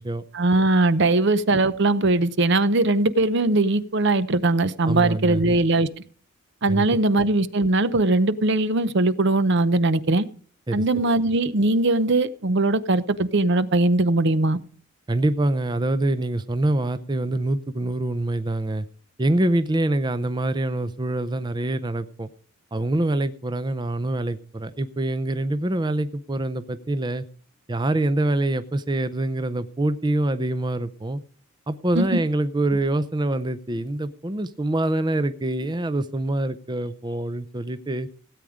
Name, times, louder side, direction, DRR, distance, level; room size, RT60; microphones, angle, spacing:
voice 1, 0.3-5.9 6.6-10.2 10.7-14.6 31.9-32.2, right 2 dB, 55° right, 14 dB, 0.7 m, -20 dB
voice 2, 4.8-5.4 6.7-7.0 10.7-11.2 15.1-18.9 19.2-22.3 22.7-27.2 27.7-31.2 31.7-38.1, right 1 dB, 20° right, 12 dB, 0.5 m, -25 dB
16.5 x 8.7 x 5.0 m, 0.43 s
head